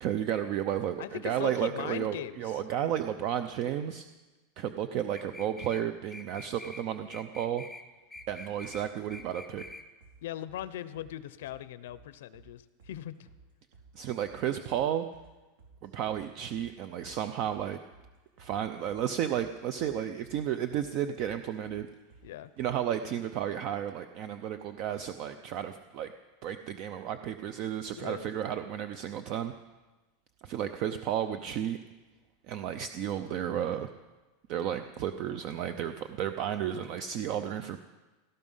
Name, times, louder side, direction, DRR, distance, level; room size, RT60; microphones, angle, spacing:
voice 1, 0.0-4.1 4.6-7.7 8.3-9.6 13.9-15.1 15.8-17.8 18.4-21.9 22.6-26.1 26.4-29.5 30.4-31.8 32.5-33.9 34.5-37.8, right 10 dB, 35° right, 10 dB, 0.6 m, -32 dB
voice 2, 1.0-2.6 10.2-13.2 22.2-22.5 27.9-28.3, left 12 dB, 70° left, 15 dB, 0.7 m, -40 dB
sound 1, 5.1-5.8 6.1-6.8 7.1-7.8 8.1-8.8 9.1-9.8, left 2 dB, ahead, 0.7 m, -46 dB
sound 2, 8.1-8.8 9.1-9.2 9.5-9.7 10.0-10.2 10.5-10.6 10.9-11.1 11.4-11.6 11.9-12.5 12.8-13.0 13.3-13.4 13.7-13.9 14.2-14.4 14.7-14.8 15.1-15.3 15.6-16.2 16.5-16.7 17.0-17.1 17.4-17.6 17.9-18.1 18.4-18.5 18.8-19.0 19.3-19.9 20.2-20.4 20.7-20.9 21.2-21.3 21.6-21.8 22.1-22.3 22.6-22.7, right 5 dB, 85° right, 4.4 m, -56 dB
17.5 x 13.5 x 5.6 m, 1.2 s
supercardioid pair, 175°, 0 cm